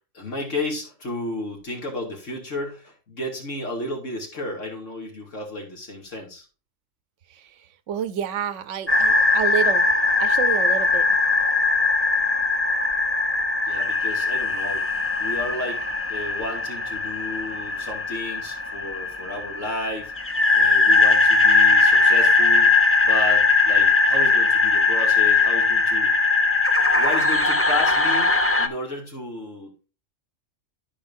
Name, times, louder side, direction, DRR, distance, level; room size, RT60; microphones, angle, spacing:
voice 1, 0.1-6.5 11.4-11.5 13.7-26.1 26.9-28.3 28.6-29.9, left 1 dB, 75° left, 2.8 m, -33 dB
voice 2, 7.9-9.9 10.2-11.2, right 9 dB, 75° right, 1.1 m, -28 dB
sound 1, 8.9-28.7, left 3 dB, 15° left, 0.5 m, -20 dB
13.0 x 5.3 x 2.6 m
omnidirectional pair, 1.3 m